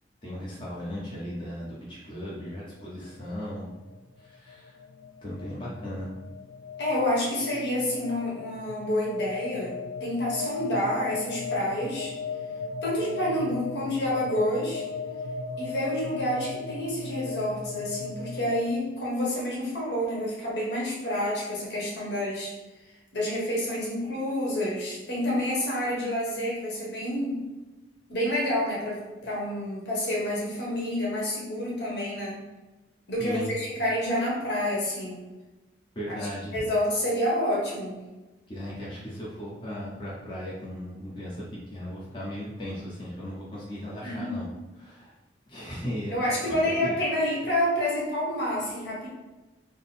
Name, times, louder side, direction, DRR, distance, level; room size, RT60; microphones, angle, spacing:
voice 1, 0.2-3.7 4.2-4.8 5.2-6.1 33.2-33.5 35.9-36.5 38.5-44.4 44.7-45.1 45.5-46.1 46.6-47.0, equal, 25° left, -7 dB, 0.8 m, -37 dB
sound 1, 2.5-18.6, left 5 dB, 85° left, 0.3 m, -37 dB
voice 2, 6.8-12.1 12.8-14.8 15.6-22.5 23.1-27.4 28.1-32.4 33.1-35.2 36.1-36.2 36.5-38.0 44.0-44.4 46.1-49.1, left 1 dB, 70° left, -4 dB, 1.3 m, -28 dB
3.6 x 2.0 x 4.2 m, 1.1 s
head